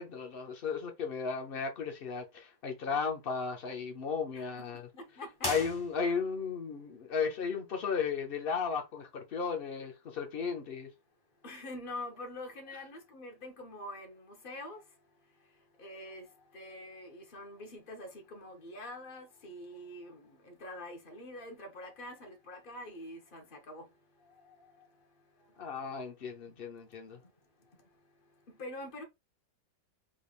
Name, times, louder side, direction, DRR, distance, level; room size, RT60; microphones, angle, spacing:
voice 1, 0.0-4.8 5.5-10.9 25.6-27.2, left 5 dB, 90° left, 0.5 m, -35 dB
voice 2, 4.3-4.7 4.9-5.5 6.1-6.2 11.4-14.8 15.8-23.9 24.2-24.9 28.6-29.0, left 1 dB, 40° left, 0.7 m, -45 dB
sound 1, 5.4-6.4, left 1 dB, 15° left, 1.6 m, -38 dB
3.8 x 3.4 x 2.4 m
omnidirectional pair, 2.0 m